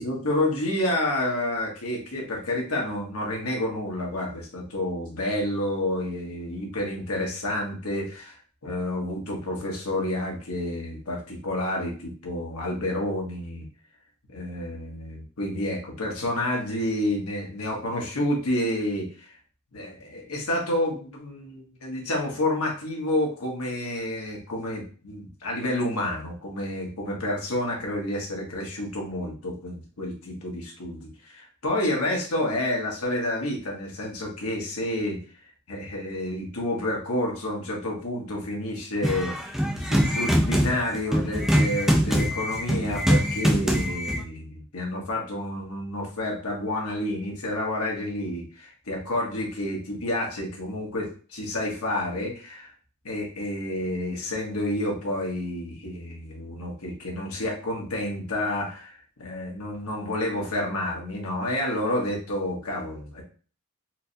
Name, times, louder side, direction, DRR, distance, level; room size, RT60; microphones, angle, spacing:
voice 1, 0.0-8.4 8.6-13.7 14.3-19.4 19.7-35.2 35.7-39.4 39.8-52.7 53.0-63.2, left 1 dB, 80° left, -1 dB, 1.1 m, -29 dB
sound 1, 39.0-44.2, equal, ahead, 0.5 m, -23 dB
4.4 x 2.2 x 2.7 m, 0.39 s
head